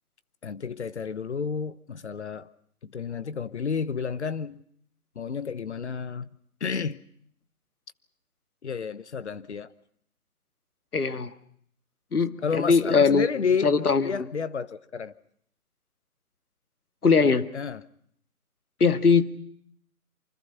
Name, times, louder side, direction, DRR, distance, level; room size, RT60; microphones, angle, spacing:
voice 1, 0.4-2.5 2.8-4.6 5.1-6.3 6.6-7.0 8.6-9.7 12.4-15.1 17.2-17.8, left 6 dB, 50° left, 1.1 m, -31 dB
voice 2, 10.9-11.3 12.1-14.3 17.0-17.5 18.8-19.2, left 5 dB, 85° left, 2.0 m, -21 dB
28.0 x 25.0 x 5.6 m
hypercardioid pair, 165°, 44 cm